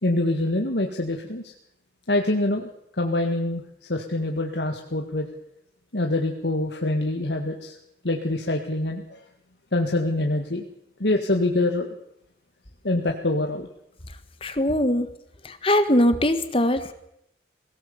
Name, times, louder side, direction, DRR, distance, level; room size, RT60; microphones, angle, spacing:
voice 1, 0.0-1.5 2.1-2.7 3.0-5.3 5.9-7.8 8.0-9.2 9.7-10.7 11.0-11.9 12.8-13.7, left 2 dB, 75° left, 3 dB, 1.8 m, -25 dB
voice 2, 14.4-15.1 15.4-16.9, left 1 dB, 30° left, 10 dB, 1.6 m, -21 dB
22.5 x 17.5 x 7.1 m, 0.75 s
head